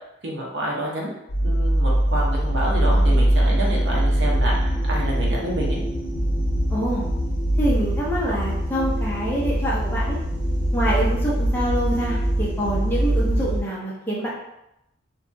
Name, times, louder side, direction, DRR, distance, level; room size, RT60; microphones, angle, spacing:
voice 1, 0.2-1.1 1.4-5.8, right 1 dB, 65° right, -3 dB, 0.7 m, -28 dB
sound 1, 1.3-13.6, right 1 dB, 75° left, 0.9 m, -22 dB
voice 2, 6.7-7.0 7.6-10.2 10.7-14.3, right 1 dB, 10° left, -6 dB, 0.5 m, -26 dB
2.7 x 2.2 x 2.6 m, 0.86 s
head